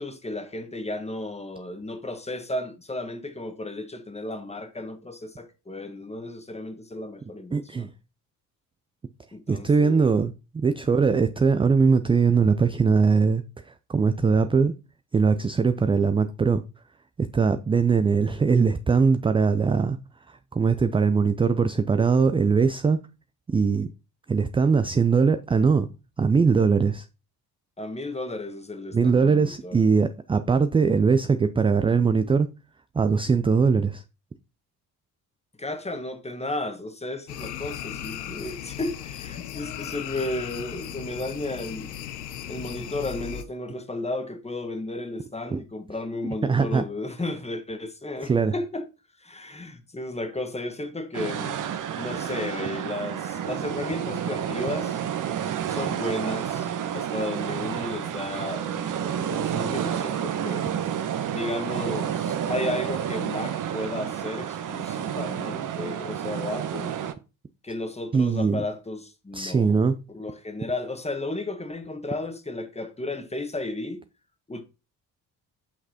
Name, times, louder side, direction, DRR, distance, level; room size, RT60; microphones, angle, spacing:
voice 1, 0.0-7.9 9.3-10.1 10.8-11.0 27.8-29.8 35.6-42.0 42.4-48.9 49.2-51.6 52.0-55.0 55.6-60.7 61.3-67.0 67.6-69.7 70.1-74.0 74.5-74.6, left 2 dB, 15° left, 1.3 m, -34 dB
voice 2, 7.5-7.9 9.5-14.7 15.1-16.6 17.2-20.0 20.3-23.0 23.5-23.9 24.3-25.9 26.2-27.1 28.9-32.5 32.9-34.0 45.5-45.6 46.4-46.8 48.2-48.5 68.1-68.6 69.3-70.0, right 5 dB, 15° right, 0.3 m, -21 dB
sound 1, 37.3-43.4, left 10 dB, 90° left, 0.6 m, -37 dB
sound 2, 51.1-67.1, right 9 dB, 40° right, 0.9 m, -30 dB
7.6 x 5.9 x 2.8 m
hypercardioid pair, 45°, 47 cm